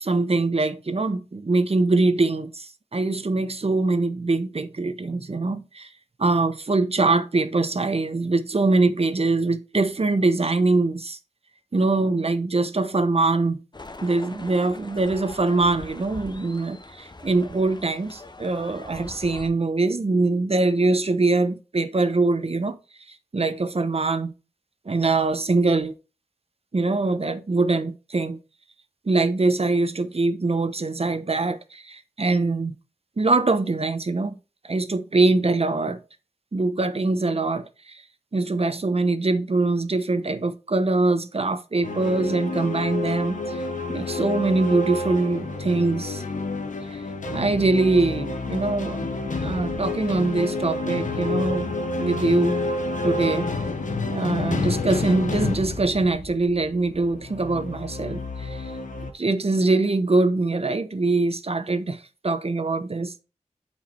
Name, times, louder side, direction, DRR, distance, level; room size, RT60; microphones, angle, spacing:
voice 1, 0.0-5.9 6.2-11.2 11.7-13.6 14.0-22.8 23.3-24.3 24.8-25.9 26.7-28.4 29.0-32.7 33.2-34.4 34.6-36.0 36.5-38.0 38.3-43.6 43.9-46.2 46.9-47.0 47.3-52.6 53.0-53.5 54.1-58.7 59.1-63.1, right 3 dB, 50° right, 1.0 m, -23 dB
sound 1, 13.7-19.5, left 2 dB, 35° left, 1.0 m, -42 dB
sound 2, 41.8-59.1, left 3 dB, 85° left, 1.3 m, -29 dB
8.6 x 4.8 x 4.5 m
wide cardioid pair, 50°, 13 cm